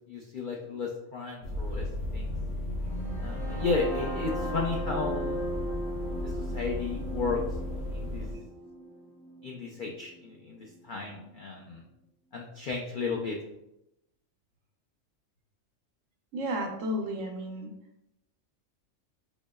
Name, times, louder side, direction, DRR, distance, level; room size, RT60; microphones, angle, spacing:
voice 1, 0.1-1.9 2.1-2.3 3.2-5.4 6.2-7.4 7.9-8.3 9.4-11.8 12.3-13.4, left 4 dB, 75° left, 0 dB, 0.4 m, -33 dB
sound 1, 1.4-8.3, left 1 dB, 60° left, 0.9 m, -35 dB
sound 2, 2.9-10.8, right 1 dB, 10° right, 0.4 m, -38 dB
voice 2, 16.3-17.7, equal, 75° right, 2 dB, 1.0 m, -33 dB
4.1 x 3.0 x 2.2 m, 0.86 s
omnidirectional pair, 1.4 m